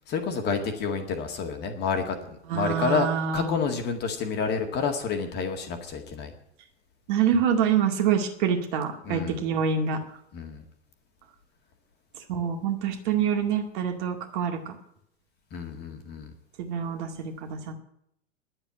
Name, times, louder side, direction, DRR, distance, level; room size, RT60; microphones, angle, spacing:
voice 1, 0.1-3.1 3.3-6.3 9.0-9.4 10.3-10.6 15.5-16.3, left 5 dB, 25° left, 5 dB, 1.9 m, -29 dB
voice 2, 2.5-3.6 7.1-10.0 12.3-14.7 16.6-17.7, right 7 dB, 40° right, 4 dB, 2.2 m, -26 dB
11.0 x 7.9 x 9.6 m, 0.73 s
figure-of-eight pair, 100°, 36 cm